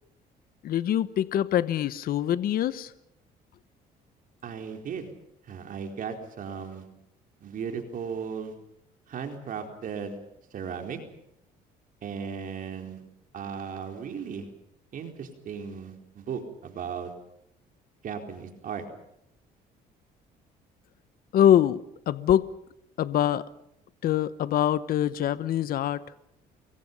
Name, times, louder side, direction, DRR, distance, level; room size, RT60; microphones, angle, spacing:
voice 1, 0.6-2.9 21.3-22.5 23.0-23.5 24.0-26.0, left 11 dB, 60° left, 1.1 m, -24 dB
voice 2, 4.4-5.1 5.4-6.9 7.4-8.5 9.1-10.2 10.5-11.0 12.0-13.0 13.3-14.5 14.9-17.1 18.0-18.8, right 6 dB, 55° right, 4.3 m, -36 dB
30.0 x 22.5 x 5.5 m
cardioid pair, 110°, 17 cm